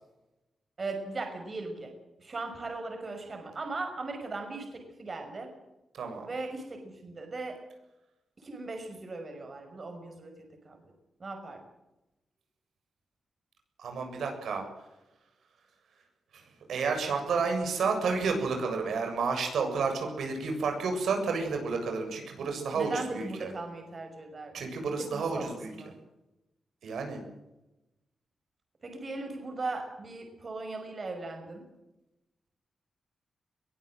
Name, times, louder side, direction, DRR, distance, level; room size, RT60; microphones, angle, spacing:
voice 1, 0.8-1.9 2.2-5.5 6.2-7.6 8.4-10.3 10.6-10.9 11.2-11.6 22.7-24.6 25.1-25.9 28.8-31.6, right 3 dB, 35° right, 5 dB, 5.9 m, -38 dB
voice 2, 5.9-6.3 13.8-14.6 16.3-23.5 24.5-25.7 26.8-27.2, right 4 dB, 90° right, 4 dB, 7.4 m, -31 dB
22.0 x 20.0 x 7.8 m, 0.95 s
wide cardioid pair, 130°, 0 cm